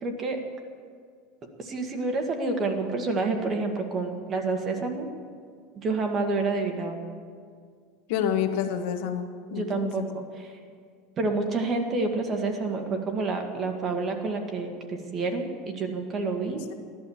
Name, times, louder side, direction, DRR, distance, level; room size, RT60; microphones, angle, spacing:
voice 1, 0.0-0.4 1.6-5.1 5.7-7.0 9.5-10.0 10.4-10.5 11.2-16.6, right 3 dB, 25° right, 3 dB, 1.7 m, -28 dB
voice 2, 8.1-10.1, left 8 dB, 65° left, 7 dB, 1.3 m, -28 dB
15.5 x 11.5 x 7.1 m, 2.1 s
supercardioid pair, 150°, 0 cm